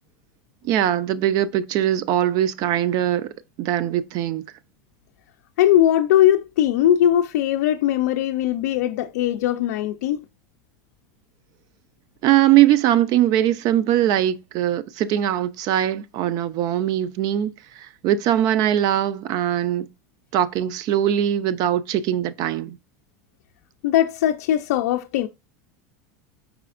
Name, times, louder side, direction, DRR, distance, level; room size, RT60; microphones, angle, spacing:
voice 1, 0.6-3.3 3.6-4.4 12.2-17.5 17.8-19.9 20.3-22.8, right 11 dB, 50° right, 0.4 m, -21 dB
voice 2, 5.6-10.2 23.8-25.3, left 11 dB, 85° left, 0.4 m, -20 dB
4.9 x 4.1 x 2.4 m
supercardioid pair, 135°, 9 cm